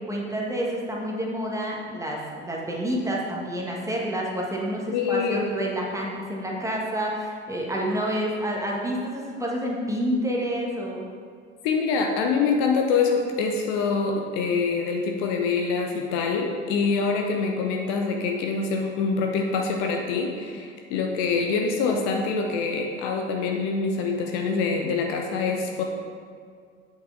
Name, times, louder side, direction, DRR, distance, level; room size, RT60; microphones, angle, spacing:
voice 1, 0.0-11.0, equal, 10° right, -2 dB, 1.4 m, -28 dB
voice 2, 4.9-5.5 11.6-25.8, left 4 dB, 45° left, 2 dB, 0.9 m, -25 dB
8.3 x 6.0 x 3.8 m, 2.1 s
figure-of-eight pair, 70°, 39 cm